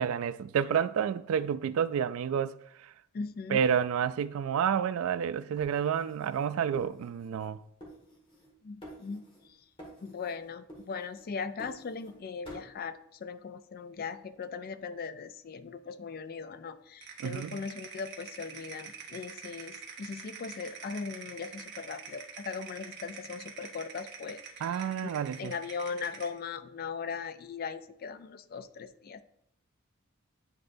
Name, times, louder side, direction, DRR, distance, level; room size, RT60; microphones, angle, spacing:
voice 1, 0.0-2.5 2.8-2.9 3.5-7.6 17.2-17.6 24.6-25.5, right 8 dB, 75° right, 0.3 m, -29 dB
voice 2, 3.1-3.6 8.6-9.3 10.0-24.8 25.4-29.2, left 5 dB, 45° left, 0.4 m, -39 dB
sound 1, 5.6-7.5 7.8-8.5 8.8-9.5 9.8-10.4 10.7-12.2 12.5-12.7, equal, 25° left, 1.6 m, -50 dB
sound 2, 17.0-26.4, right 6 dB, 55° right, 1.0 m, -46 dB
9.6 x 3.9 x 2.6 m
head